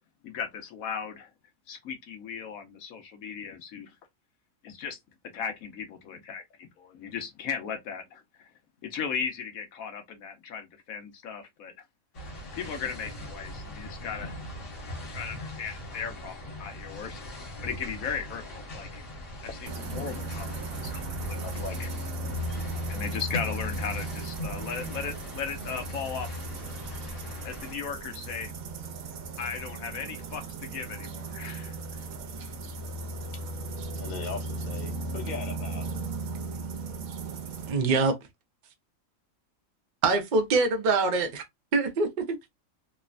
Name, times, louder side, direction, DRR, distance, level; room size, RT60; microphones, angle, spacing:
voice 1, 0.2-1.3 1.7-3.9 4.6-5.0 5.3-8.5 8.8-11.7 12.5-14.4 15.1-17.3 17.6-19.0 19.4-21.9 22.9-26.8 27.4-28.5 29.4-32.0, left 6 dB, 90° left, 1.2 m, -37 dB
sound 1, 12.1-27.7, left 1 dB, 65° left, 1.5 m, -40 dB
sound 2, 19.6-37.7, right 2 dB, 80° right, 1.0 m, -36 dB
voice 2, 34.0-36.0, left 5 dB, 40° left, 0.8 m, -39 dB
voice 3, 37.7-38.2 40.0-41.4 41.7-42.4, right 3 dB, 50° right, 0.6 m, -24 dB
3.1 x 2.1 x 2.4 m
omnidirectional pair, 1.4 m